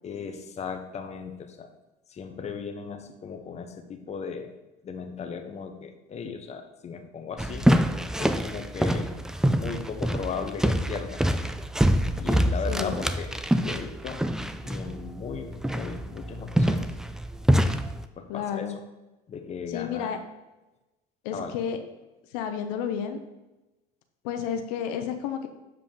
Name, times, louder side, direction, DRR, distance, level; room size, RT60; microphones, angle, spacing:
voice 1, 0.0-1.7 2.1-4.5 4.8-7.7 8.1-9.1 9.5-11.2 12.2-14.2 14.6-16.9 18.2-18.8 19.3-20.1 21.3-21.6, left 6 dB, 35° left, 5 dB, 0.9 m, -37 dB
sound 1, 7.4-18.1, equal, 5° right, 0.3 m, -25 dB
voice 2, 18.3-18.7 19.7-20.2 21.2-21.8 22.3-23.2 24.2-25.5, left 8 dB, 90° left, 7 dB, 0.7 m, -31 dB
7.2 x 4.8 x 3.8 m, 1.0 s
supercardioid pair, 105°, 20 cm